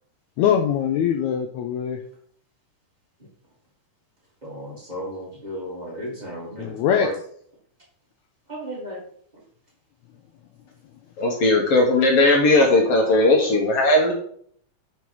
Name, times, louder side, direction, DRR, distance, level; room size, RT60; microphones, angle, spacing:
voice 1, 0.4-2.0 6.6-7.1, left 8 dB, 85° left, 5 dB, 1.6 m, -22 dB
voice 2, 4.4-7.1 8.5-9.0, right 1 dB, 35° right, -4 dB, 0.6 m, -34 dB
voice 3, 11.2-14.1, left 2 dB, 60° left, 1 dB, 1.7 m, -17 dB
6.1 x 5.4 x 4.7 m, 0.62 s
omnidirectional pair, 3.8 m